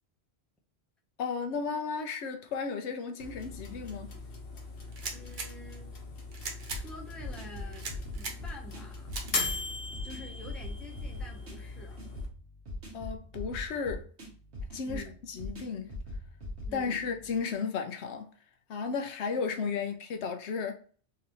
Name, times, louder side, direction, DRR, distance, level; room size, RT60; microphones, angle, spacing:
voice 1, 1.2-4.1 12.9-14.1 14.7-15.9 16.7-18.3 18.7-20.7, left 5 dB, 85° left, 1.0 m, -34 dB
sound 1, 3.2-12.3, left 4 dB, 60° left, 1.0 m, -40 dB
sound 2, 4.9-5.5 6.3-6.8 7.7-8.4 9.1-9.5, right 4 dB, 50° right, 0.8 m, -38 dB
voice 2, 5.1-5.9 6.7-7.9 8.2-9.2 10.0-11.9 14.8-15.2 16.6-17.1, left 2 dB, ahead, 0.7 m, -48 dB
sound 3, 6.7-17.6, left 1 dB, 80° right, 1.5 m, -42 dB
3.9 x 2.6 x 3.0 m
omnidirectional pair, 1.1 m